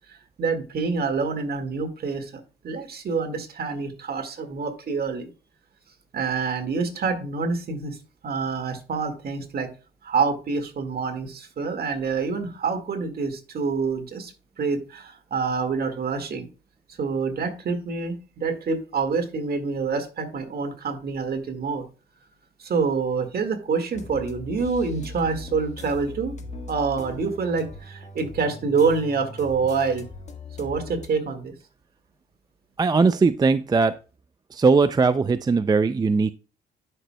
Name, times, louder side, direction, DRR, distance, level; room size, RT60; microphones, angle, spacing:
voice 1, 0.4-5.3 6.1-8.0 8.2-9.7 10.0-16.5 17.0-21.9 22.6-26.4 26.7-30.1 30.6-31.5, right 5 dB, 50° right, 6 dB, 1.9 m, -27 dB
sound 1, 23.9-31.1, left 2 dB, 35° left, 1.5 m, -40 dB
voice 2, 32.8-33.9 34.5-36.3, right 4 dB, 20° right, 11 dB, 0.4 m, -19 dB
11.0 x 6.1 x 2.2 m, 0.34 s
cardioid pair, 90°, 20 cm